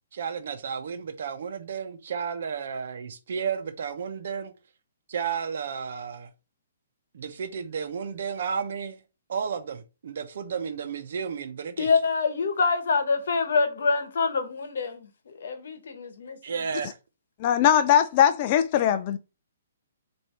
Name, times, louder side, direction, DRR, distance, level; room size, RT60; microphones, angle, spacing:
voice 1, 0.1-4.5 5.1-6.3 7.1-9.0 9.3-11.9 16.4-17.0, right 6 dB, 65° right, 0.8 m, -32 dB
voice 2, 11.8-16.4, left 4 dB, 70° left, 1.0 m, -26 dB
voice 3, 17.4-19.2, left 10 dB, 35° left, 0.3 m, -20 dB
6.3 x 2.6 x 3.2 m
hypercardioid pair, 150°, 0 cm